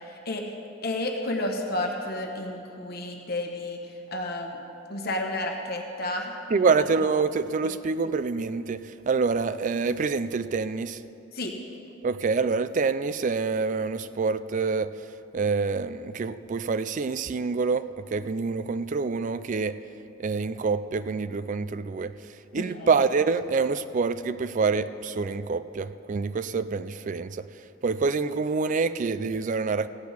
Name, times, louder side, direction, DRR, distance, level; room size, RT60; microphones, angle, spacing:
voice 1, 0.1-0.4 0.8-3.8 4.1-4.6 4.9-6.7 11.3-11.5 22.5-22.9, left 1 dB, 50° left, 2 dB, 1.1 m, -31 dB
voice 2, 6.5-11.0 12.0-14.9 15.3-19.7 20.2-22.1 22.5-27.4 27.8-29.9, right 4 dB, 40° right, 14 dB, 0.3 m, -26 dB
15.5 x 6.1 x 8.5 m, 2.9 s
head